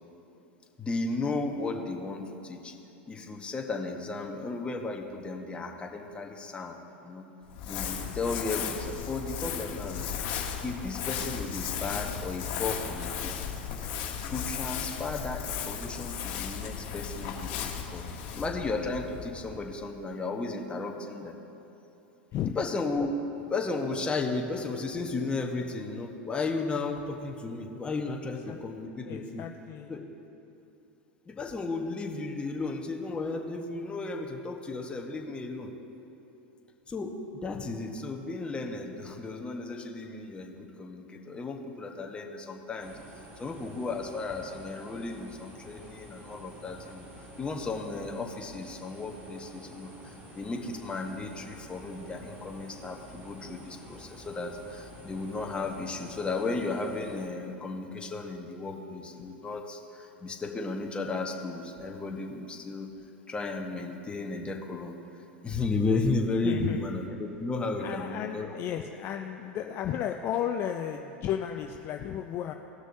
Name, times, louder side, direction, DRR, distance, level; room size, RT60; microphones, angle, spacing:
voice 1, 0.8-2.7 3.0-6.8 7.0-7.3 7.6-13.3 13.8-13.9 14.3-18.0 18.3-21.3 22.5-23.1 23.5-29.4 29.9-30.0 31.3-35.7 36.9-42.9 43.4-47.1 47.4-62.9 63.3-64.9 65.4-68.5, left 3 dB, 15° left, 2 dB, 1.1 m, -34 dB
Crumpling crinkling, 7.5-19.9, left 8 dB, 60° left, 1.3 m, -35 dB
voice 2, 29.0-30.0 66.4-66.8 67.8-72.5, left 9 dB, 40° left, 4 dB, 0.4 m, -34 dB
sound 1, 42.8-57.3, right 1 dB, 30° right, 1.7 m, -49 dB
18.5 x 6.2 x 2.7 m, 3.0 s
hypercardioid pair, 95°, 6 cm